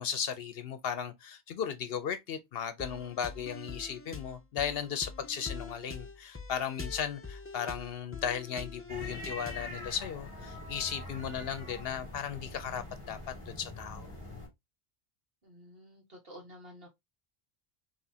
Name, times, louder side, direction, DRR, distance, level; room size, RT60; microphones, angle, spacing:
voice 1, 0.0-13.2 13.5-14.1, left 8 dB, 65° left, 0.8 m, -36 dB
sound 1, 2.8-9.8, left 4 dB, 20° left, 0.4 m, -44 dB
sound 2, 8.9-14.5, left 1 dB, 5° right, 2.5 m, -44 dB
voice 2, 15.4-16.9, equal, 60° right, 1.9 m, -51 dB
6.0 x 3.1 x 2.7 m
omnidirectional pair, 1.1 m